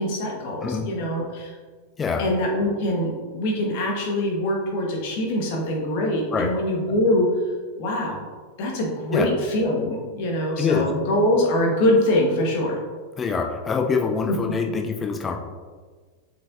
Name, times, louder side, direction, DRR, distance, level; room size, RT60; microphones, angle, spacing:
voice 1, 0.0-1.5 2.2-7.3 7.8-8.2 8.6-12.8 14.3-14.4, left 1 dB, 45° left, -1 dB, 1.5 m, -23 dB
voice 2, 13.2-15.4, left 5 dB, 20° left, 3 dB, 0.7 m, -24 dB
7.3 x 4.9 x 2.7 m, 1.5 s
figure-of-eight pair, 90°, 0 cm